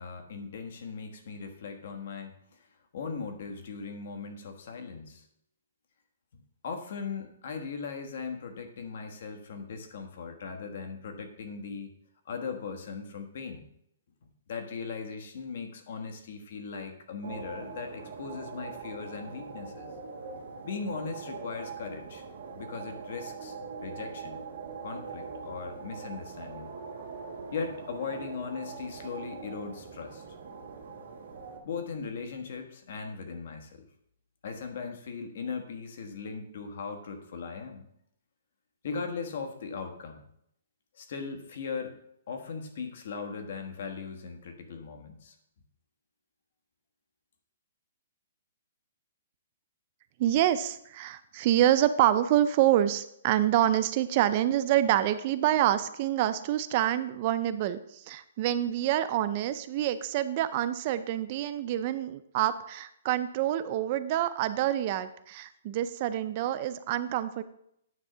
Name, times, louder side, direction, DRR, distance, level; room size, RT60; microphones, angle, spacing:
voice 1, 0.0-2.6 2.9-5.2 6.6-11.9 12.2-13.7 14.5-19.9 20.6-22.3 22.6-23.6 23.8-24.4 24.8-26.7 27.5-30.2 31.6-33.8 34.4-37.8 38.8-40.2 41.0-42.0 42.3-45.3, left 5 dB, 55° left, 5 dB, 1.4 m, -38 dB
sound 1, 17.2-31.6, right 5 dB, 60° right, 2.0 m, -42 dB
voice 2, 50.2-67.4, right 12 dB, 30° right, 12 dB, 0.4 m, -27 dB
9.5 x 3.6 x 6.7 m, 0.73 s
hypercardioid pair, 165°, 0 cm